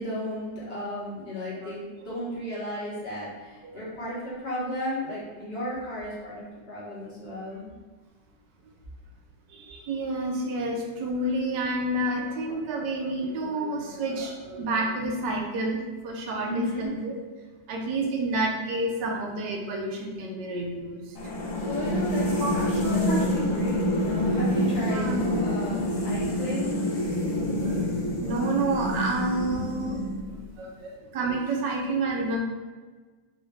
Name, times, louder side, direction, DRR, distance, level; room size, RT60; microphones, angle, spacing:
voice 1, 0.0-7.7 16.4-16.9 21.6-26.8, left 1 dB, 40° left, -8 dB, 1.3 m, -34 dB
voice 2, 9.5-15.8 16.0-17.1 17.7-21.0 22.4-22.5 22.8-23.3 24.9-25.4 27.3-30.0 30.6-32.4, right 2 dB, 75° right, 1 dB, 1.2 m, -29 dB
sound 1, 21.2-30.5, left 1 dB, 85° left, 1.5 m, -27 dB
4.0 x 2.4 x 3.1 m, 1.3 s
omnidirectional pair, 2.0 m